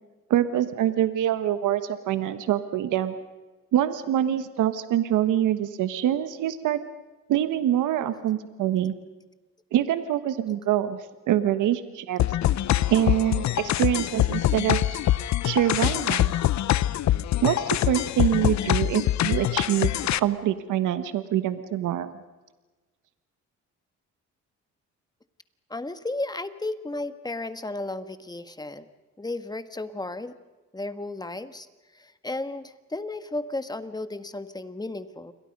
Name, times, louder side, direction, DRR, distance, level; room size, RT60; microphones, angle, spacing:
voice 1, 0.3-3.1 3.7-6.8 7.3-8.9 9.7-11.0 11.3-12.2 12.9-15.0 15.4-16.3 17.4-19.9 20.2-22.1, right 11 dB, 85° right, 11 dB, 1.4 m, -25 dB
sound 1, 12.2-20.2, left 13 dB, 65° left, 0.8 m, -24 dB
voice 2, 25.7-28.9 29.2-30.3 30.7-31.7 31.9-35.3, left 2 dB, 15° left, 11 dB, 1.6 m, -34 dB
29.0 x 22.5 x 5.4 m, 1.2 s
cardioid pair, 90°, 30 cm